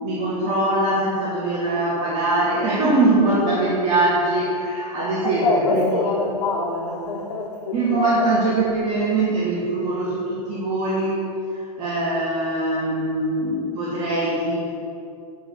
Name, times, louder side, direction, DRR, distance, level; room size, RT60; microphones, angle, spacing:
voice 1, 0.0-5.9 7.7-11.1 11.5-14.7, right 2 dB, 30° right, -10 dB, 3.0 m, -22 dB
voice 2, 5.2-8.3, left 3 dB, 75° left, -2 dB, 2.9 m, -25 dB
13.5 x 5.2 x 7.3 m, 2.7 s
hypercardioid pair, 150°, 21 cm